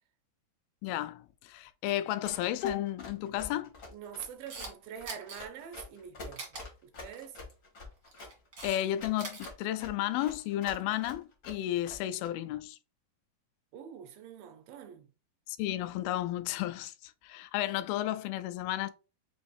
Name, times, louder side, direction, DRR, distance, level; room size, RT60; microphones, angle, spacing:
voice 1, 0.8-3.7 8.6-12.8 15.5-18.9, left 13 dB, 90° left, 2.3 m, -33 dB
Run, 2.2-12.3, left 3 dB, 70° left, 0.7 m, -47 dB
voice 2, 3.9-6.6 6.8-7.4 13.7-15.1, right 8 dB, 90° right, 2.5 m, -45 dB
Camera, 4.2-4.7 5.0-5.4 6.3-6.6 7.9-8.8 9.1-9.5, right 3 dB, 65° right, 0.8 m, -42 dB
6.1 x 2.7 x 3.1 m
omnidirectional pair, 4.1 m